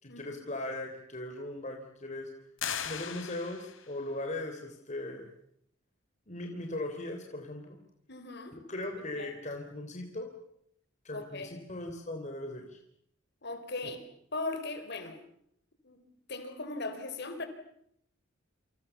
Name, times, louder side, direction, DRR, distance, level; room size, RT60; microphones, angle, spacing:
voice 1, 0.0-2.3 2.8-5.3 6.3-7.8 8.7-10.3 11.0-12.8, left 1 dB, 35° left, 3 dB, 3.3 m, -38 dB
sound 1, 2.6-4.0, left 8 dB, 75° left, 2.8 m, -38 dB
voice 2, 8.1-8.6 9.0-9.3 11.1-11.5 13.4-14.0 14.3-15.2 15.8-16.0 16.3-17.5, left 2 dB, 55° left, 8 dB, 4.4 m, -38 dB
28.5 x 26.5 x 7.0 m, 0.72 s
head